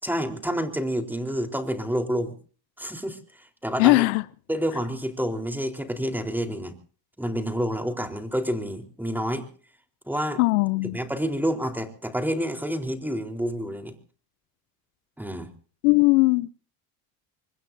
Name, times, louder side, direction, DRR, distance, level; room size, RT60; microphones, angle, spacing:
voice 1, 0.0-2.3 2.8-4.1 4.5-6.7 7.2-9.5 10.1-10.4 10.9-13.9 15.2-15.5, equal, 5° right, 3.9 m, -28 dB
voice 2, 3.8-4.2 10.4-11.0 15.8-16.5, left 24 dB, 85° left, 0.8 m, -19 dB
25.5 x 21.0 x 2.7 m
supercardioid pair, 85°, 48 cm